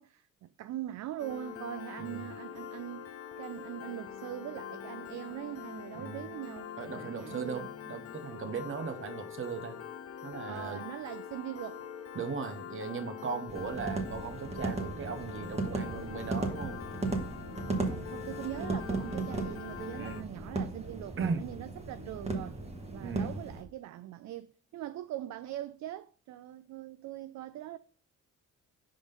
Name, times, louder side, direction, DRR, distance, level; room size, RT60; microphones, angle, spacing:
voice 1, 0.0-7.7 10.5-11.9 17.6-22.6 22.9-27.8, right 13 dB, 65° right, 0.4 m, -42 dB
Piano, 1.2-20.2, left 8 dB, 50° left, 0.8 m, -44 dB
voice 2, 2.0-2.3 6.0-6.2 6.8-9.8 10.2-10.8 12.1-16.8 20.0-20.3 21.2-21.4 23.0-23.4, right 5 dB, 45° right, 1.0 m, -38 dB
sound 1, 13.5-23.6, right 3 dB, 20° right, 1.2 m, -36 dB
5.0 x 3.9 x 5.2 m
cardioid pair, 90°, 30 cm